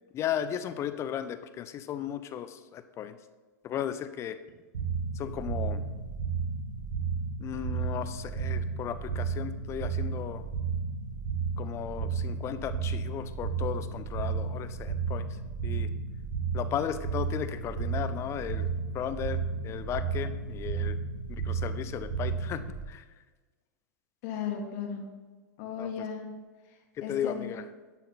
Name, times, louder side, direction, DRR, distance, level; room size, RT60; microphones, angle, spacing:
voice 1, 0.1-3.2 3.6-4.4 5.1-5.8 7.4-10.4 11.6-15.3 15.6-15.9 16.5-18.7 18.9-21.0 21.3-22.6 22.9-23.0 25.8-25.9 27.0-27.7, left 9 dB, 30° left, 11 dB, 0.4 m, -35 dB
sound 1, 4.7-22.8, right 5 dB, 80° right, 1.4 m, -33 dB
voice 2, 24.2-25.0 25.6-26.3 27.0-27.5, left 7 dB, 55° left, 3 dB, 1.5 m, -35 dB
10.5 x 4.2 x 4.0 m, 1.3 s
hypercardioid pair, 115°, 10 cm